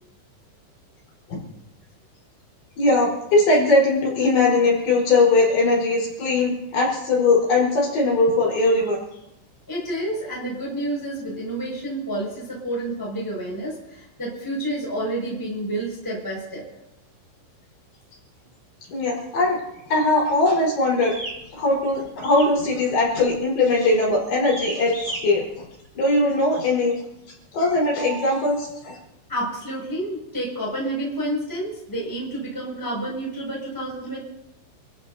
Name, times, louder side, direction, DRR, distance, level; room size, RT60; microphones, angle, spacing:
voice 1, 2.8-9.0 18.9-19.6 19.9-21.1 21.5-25.6 26.0-27.0 27.5-29.0, left 2 dB, 55° left, -3 dB, 6.7 m, -20 dB
voice 2, 9.7-16.6 29.3-34.2, right 1 dB, 5° left, -4 dB, 5.8 m, -29 dB
sound 1, 21.0-21.4 22.2-22.6 22.9-23.2 23.7-24.0 24.4-25.2, right 1 dB, 20° right, 4.9 m, -34 dB
29.5 x 14.5 x 2.8 m, 0.87 s
omnidirectional pair, 5.8 m